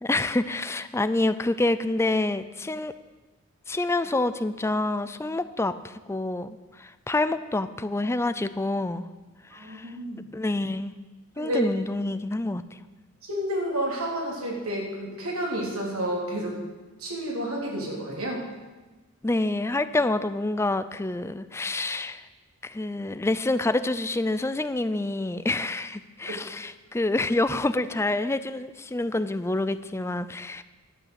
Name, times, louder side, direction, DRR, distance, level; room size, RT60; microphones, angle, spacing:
voice 1, 0.0-2.9 3.7-9.1 9.5-9.9 10.3-10.9 11.4-12.8 19.2-22.3 22.6-30.6, left 2 dB, 10° left, 13 dB, 0.4 m, -27 dB
voice 2, 9.5-10.3 11.4-11.6 13.2-16.6 17.0-18.5 26.3-26.4, right 1 dB, 80° right, -2 dB, 3.5 m, -30 dB
11.5 x 7.3 x 8.1 m, 1.2 s
head